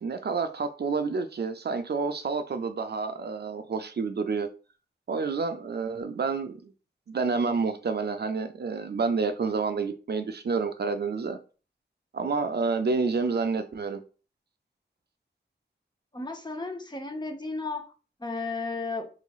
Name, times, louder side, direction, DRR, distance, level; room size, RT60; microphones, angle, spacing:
voice 1, 0.0-4.5 5.1-6.7 7.1-11.4 12.1-14.0, right 4 dB, 55° right, 0.4 m, -29 dB
voice 2, 16.1-17.8 18.2-19.1, left 3 dB, 20° left, 0.7 m, -33 dB
3.5 x 3.1 x 2.3 m
cardioid pair, 45°, 20 cm